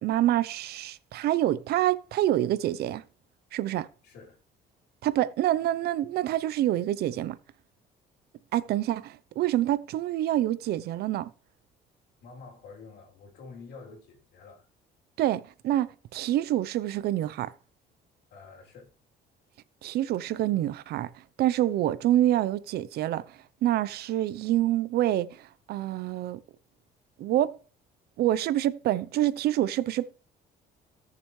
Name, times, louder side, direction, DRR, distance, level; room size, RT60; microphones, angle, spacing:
voice 1, 0.0-3.0 3.5-3.9 5.0-7.4 8.5-11.3 15.2-17.5 19.8-26.4 27.2-27.6 28.2-30.1, right 13 dB, 70° right, 0.7 m, -27 dB
voice 2, 4.0-4.4 12.2-14.7 18.3-18.9, left 4 dB, 80° left, 3.3 m, -48 dB
17.0 x 6.9 x 3.2 m
cardioid pair, 110°, 17 cm